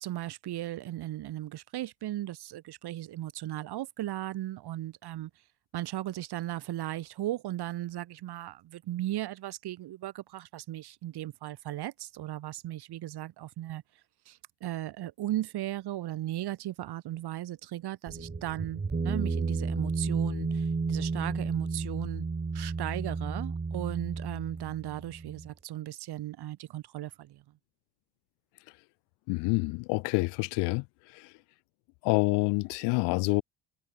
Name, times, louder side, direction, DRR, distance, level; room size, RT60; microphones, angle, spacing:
voice 1, 0.0-5.3 5.7-13.8 14.3-22.3 22.5-27.4, right 14 dB, 70° right, 6.4 m, -36 dB
sound 1, 18.1-25.5, right 4 dB, 25° right, 3.0 m, -32 dB
voice 2, 29.3-30.8 31.1-31.3 32.0-33.4, left 29 dB, 80° left, 2.2 m, -27 dB
supercardioid pair, 65°, 41 cm